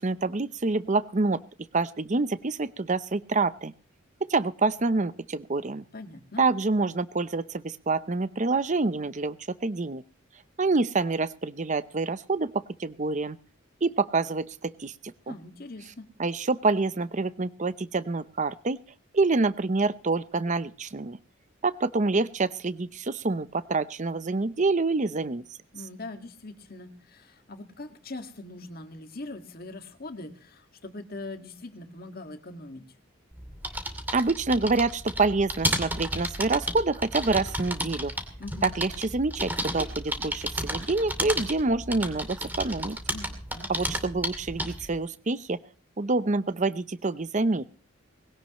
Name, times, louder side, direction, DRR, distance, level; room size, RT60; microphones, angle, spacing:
voice 1, 0.0-1.4 1.7-3.7 4.3-5.8 6.4-9.4 9.6-10.0 10.6-13.4 13.8-14.9 15.3-15.4 16.2-18.8 19.1-21.2 21.6-25.4 34.1-38.1 38.6-43.0 43.7-45.6 46.0-47.6, right 3 dB, 35° right, 15 dB, 0.7 m, -27 dB
voice 2, 5.9-6.5 15.3-16.1 25.7-32.9 38.4-38.7 43.1-43.7, left 2 dB, 50° left, 7 dB, 1.8 m, -41 dB
sound 1, 33.3-44.9, right 1 dB, 10° right, 2.5 m, -33 dB
20.5 x 17.0 x 3.0 m, 0.41 s
head